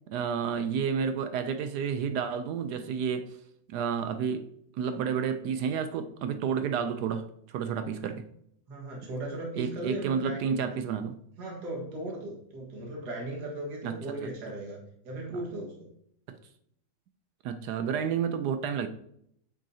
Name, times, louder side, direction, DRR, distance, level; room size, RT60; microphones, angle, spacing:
voice 1, 0.1-3.4 3.7-8.3 9.0-9.1 9.6-11.1 13.8-14.0 16.3-16.4 17.4-18.9, right 7 dB, 70° right, 9 dB, 1.0 m, -30 dB
voice 2, 8.7-10.7 11.4-15.9, right 1 dB, 55° right, -2 dB, 2.2 m, -37 dB
8.6 x 6.2 x 2.8 m, 0.70 s
omnidirectional pair, 2.2 m